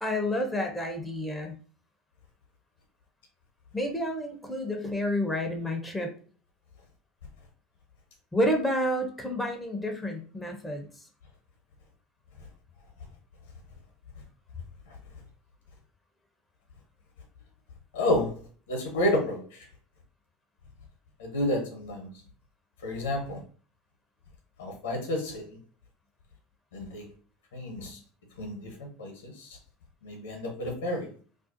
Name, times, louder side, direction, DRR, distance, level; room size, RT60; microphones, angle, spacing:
voice 1, 0.0-1.6 3.7-6.1 8.3-10.9, left 1 dB, 10° left, 4 dB, 0.6 m, -29 dB
voice 2, 17.9-18.3 18.7-19.4 21.2-22.1 22.8-23.4 24.6-25.6 26.7-27.0 27.5-28.0 28.4-29.5 30.0-31.1, left 1 dB, 70° left, 1 dB, 0.8 m, -30 dB
2.5 x 2.3 x 2.5 m, 0.41 s
figure-of-eight pair, 70°, 0 cm